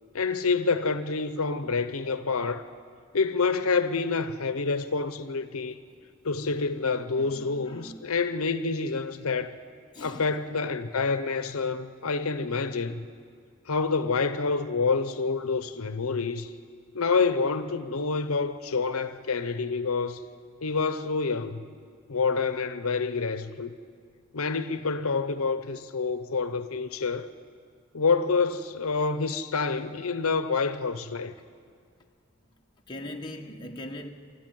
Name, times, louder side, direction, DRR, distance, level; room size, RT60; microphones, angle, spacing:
voice 1, 0.1-2.6 3.1-5.8 6.2-9.6 10.0-13.1 13.7-16.5 16.9-20.2 20.6-21.7 22.1-23.7 24.3-27.3 27.9-31.3, left 4 dB, 80° left, 0.8 m, -27 dB
voice 2, 7.1-8.0 9.9-10.3 32.9-34.1, left 1 dB, 20° left, 1.4 m, -40 dB
29.0 x 13.0 x 9.2 m
head